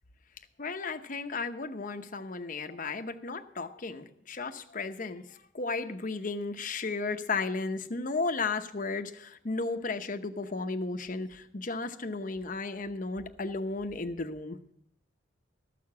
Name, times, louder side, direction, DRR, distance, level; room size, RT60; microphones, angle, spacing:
voice 1, 0.6-14.7, left 3 dB, 45° left, 7 dB, 0.8 m, -34 dB
13.5 x 6.7 x 7.0 m, 0.73 s
head